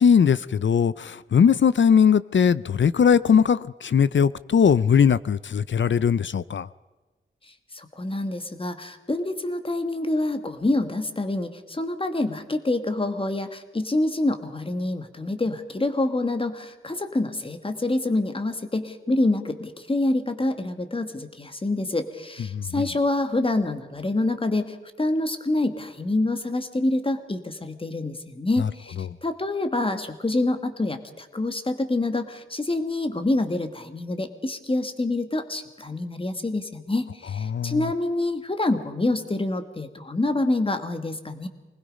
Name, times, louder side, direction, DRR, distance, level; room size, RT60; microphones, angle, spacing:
voice 1, 0.0-6.7 22.5-22.6 28.6-28.7 37.5-37.9, left 7 dB, 65° left, 17 dB, 0.5 m, -20 dB
voice 2, 7.7-41.5, left 2 dB, 25° left, 8 dB, 1.6 m, -26 dB
25.0 x 20.0 x 5.3 m, 1.2 s
wide cardioid pair, 125°, 21 cm